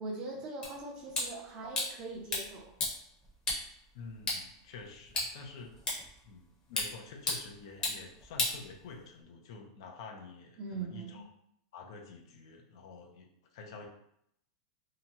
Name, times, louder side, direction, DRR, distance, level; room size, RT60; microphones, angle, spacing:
voice 1, 0.0-2.7 10.6-11.3, right 3 dB, 30° right, 0 dB, 0.6 m, -41 dB
sound 1, 0.6-9.2, left 2 dB, 25° left, 0.9 m, -38 dB
voice 2, 3.9-5.7 6.2-11.3 11.7-13.3 13.5-13.9, left 4 dB, 65° left, 2 dB, 0.6 m, -48 dB
2.8 x 2.3 x 2.9 m, 0.74 s
supercardioid pair, 155°, 3 cm